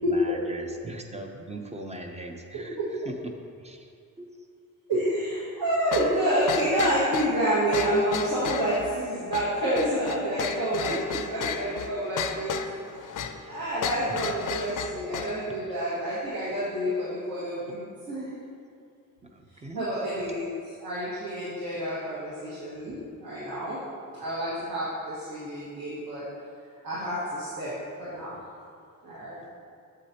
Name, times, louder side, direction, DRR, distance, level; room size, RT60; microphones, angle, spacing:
voice 1, 0.0-2.8 3.1-3.9 4.2-4.3 10.9-11.2 13.1-13.6 14.1-14.2 19.2-19.9 29.4-29.5, right 1 dB, 20° right, 3 dB, 0.4 m, -40 dB
voice 2, 4.9-12.6 13.5-18.3 19.5-23.8 24.1-26.2 26.8-27.7 28.0-28.4 29.0-29.4, right 1 dB, 80° right, -10 dB, 1.7 m, -28 dB
sound 1, 5.9-15.4, left 7 dB, 65° left, 0.5 m, -34 dB
8.3 x 7.3 x 2.8 m, 2.3 s
wide cardioid pair, 165°, 34 cm